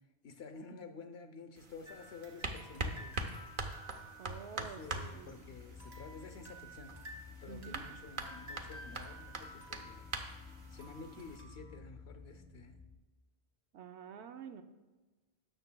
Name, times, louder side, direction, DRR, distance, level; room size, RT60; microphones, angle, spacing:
voice 1, 0.2-3.3 4.5-6.9 7.4-10.2 10.7-12.8, left 4 dB, 75° left, 7 dB, 1.0 m, -51 dB
sound 1, 1.6-11.4, right 2 dB, 55° right, 0.9 m, -44 dB
sound 2, 1.9-5.4 5.8-11.8, right 1 dB, 70° right, 1.8 m, -54 dB
voice 2, 4.2-5.4 7.5-7.8 13.7-14.6, right 7 dB, 90° right, 8 dB, 0.9 m, -49 dB
sound 3, 4.8-12.9, left 4 dB, 5° left, 0.7 m, -54 dB
18.0 x 6.6 x 2.2 m, 1.2 s
omnidirectional pair, 1.1 m